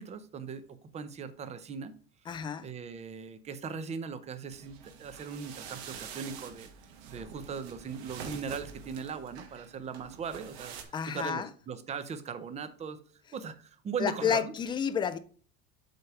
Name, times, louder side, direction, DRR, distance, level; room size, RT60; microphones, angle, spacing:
voice 1, 0.0-1.9 2.6-6.7 7.1-10.8 11.1-13.0 13.3-14.5, right 6 dB, 20° right, 0.6 m, -39 dB
voice 2, 2.3-2.7 10.9-11.5 14.0-15.2, left 7 dB, 15° left, 0.3 m, -30 dB
bed-making, 4.5-10.8, right 7 dB, 85° right, 1.6 m, -46 dB
7.8 x 3.4 x 5.6 m
cardioid pair, 155°, 32 cm